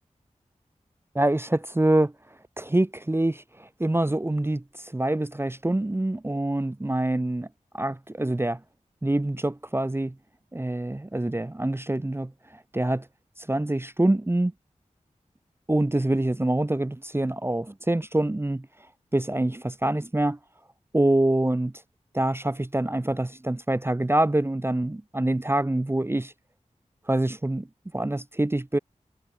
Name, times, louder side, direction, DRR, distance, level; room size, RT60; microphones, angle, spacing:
voice 1, 1.1-2.1 2.6-7.5 7.7-8.6 9.0-10.1 10.5-13.1 13.4-14.5 15.7-18.7 19.1-20.4 20.9-21.7 22.1-26.3 27.1-27.7 27.9-28.8, right 1 dB, 20° right, 0.9 m, -25 dB
wide cardioid pair, 65°, 13 cm